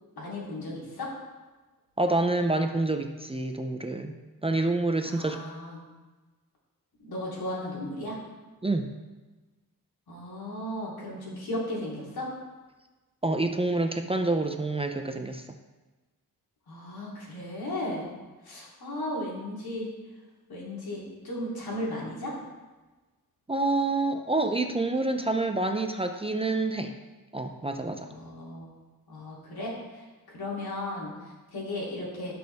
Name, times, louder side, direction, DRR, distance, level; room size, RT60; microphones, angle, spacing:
voice 1, 0.2-1.1 5.0-5.8 7.0-8.2 10.1-12.3 16.7-18.2 18.4-19.9 20.5-22.4 28.1-28.7 29.1-32.3, left 1 dB, 80° left, -5 dB, 3.5 m, -35 dB
voice 2, 2.0-5.4 8.6-8.9 13.2-15.4 23.5-26.9 27.3-28.1, right 2 dB, 15° right, 5 dB, 0.5 m, -27 dB
17.0 x 6.2 x 3.5 m, 1.2 s
wide cardioid pair, 150°, 36 cm